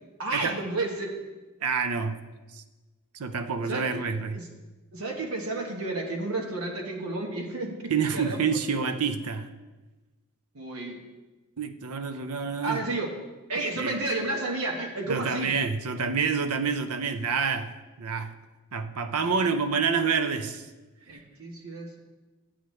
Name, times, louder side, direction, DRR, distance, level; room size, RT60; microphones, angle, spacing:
voice 1, 0.2-1.2 3.6-4.5 4.9-8.5 10.5-11.0 12.6-13.1 13.5-15.5 19.2-19.5 21.1-22.0, right 2 dB, 70° right, 0 dB, 1.2 m, -32 dB
voice 2, 1.6-2.2 2.5-2.6 3.1-4.4 7.9-9.5 11.6-12.8 13.8-13.9 15.1-17.7 18.0-18.3 18.7-20.7, right 5 dB, 90° right, 9 dB, 0.6 m, -28 dB
11.5 x 7.9 x 3.2 m, 1.2 s
head